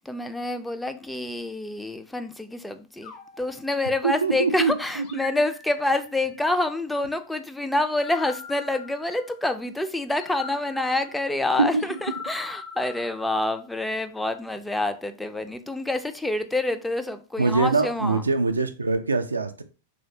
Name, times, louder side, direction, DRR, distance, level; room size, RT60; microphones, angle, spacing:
voice 1, 0.0-18.2, left 2 dB, 5° left, 0.3 m, -27 dB
sound 1, 3.0-4.4 5.0-6.3 7.8-9.5 10.2-13.7, left 6 dB, 45° left, 0.6 m, -42 dB
voice 2, 4.0-5.2 11.7-12.0 17.4-19.6, right 4 dB, 80° right, 0.3 m, -24 dB
3.1 x 2.7 x 2.7 m
figure-of-eight pair, 95°, 0 cm